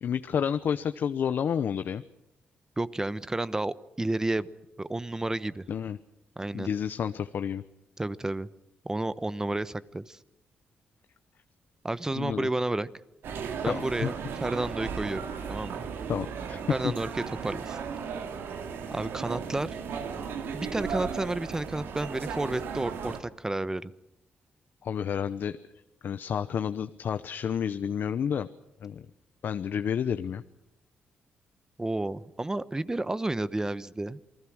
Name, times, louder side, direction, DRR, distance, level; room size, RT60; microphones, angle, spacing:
voice 1, 0.0-2.0 5.7-6.0 6.5-7.6 12.1-12.5 13.7-14.1 16.1-16.9 24.8-25.6 26.0-28.5 28.8-29.1 29.4-30.4, left 8 dB, 65° left, 11 dB, 0.9 m, -30 dB
voice 2, 2.8-4.5 4.8-5.6 6.4-6.7 8.0-8.5 8.8-10.2 11.8-12.9 13.6-14.1 14.4-15.2 15.5-15.8 16.7-17.8 18.9-19.8 20.5-23.9 31.8-34.2, right 2 dB, 15° right, 16 dB, 1.0 m, -31 dB
sound 1, 13.2-23.2, right 6 dB, 90° right, 2.5 m, -36 dB
28.5 x 20.0 x 6.4 m, 0.89 s
cardioid pair, 95°, 4 cm